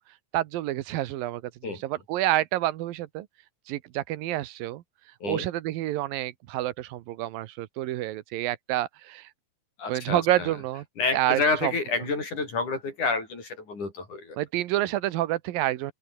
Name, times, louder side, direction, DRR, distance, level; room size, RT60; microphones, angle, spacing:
voice 1, 0.3-3.3 3.7-4.8 5.2-9.3 9.9-10.8 11.1-11.7 14.4-15.9, right 15 dB, 85° right, 2.8 m, -28 dB
voice 2, 9.8-10.5 11.0-14.4, left 3 dB, 60° left, 8.2 m, -29 dB
open air
omnidirectional pair, 4.0 m